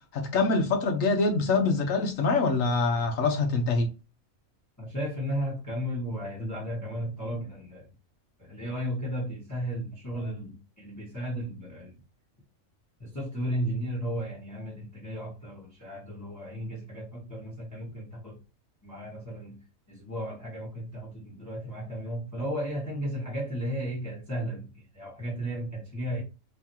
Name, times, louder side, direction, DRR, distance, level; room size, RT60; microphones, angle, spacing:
voice 1, 0.1-3.9, left 3 dB, 75° left, 1.3 m, -25 dB
voice 2, 4.8-7.9 8.4-12.0 13.0-18.4 18.8-26.2, equal, 15° left, 1.1 m, -34 dB
3.6 x 3.3 x 2.8 m
omnidirectional pair, 1.4 m